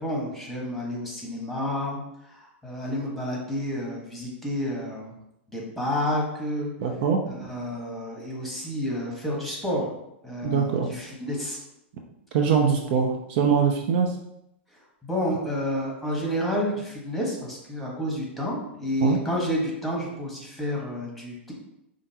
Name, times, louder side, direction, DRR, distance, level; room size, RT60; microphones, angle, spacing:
voice 1, 0.0-2.0 2.3-5.1 5.5-6.7 7.3-9.9 10.2-11.6 15.0-21.5, equal, ahead, -3 dB, 1.3 m, -30 dB
voice 2, 6.8-7.2 10.4-10.9 12.3-14.1 19.0-19.2, right 6 dB, 55° right, 3 dB, 0.5 m, -22 dB
5.0 x 2.5 x 2.8 m, 0.82 s
hypercardioid pair, 105°, 6 cm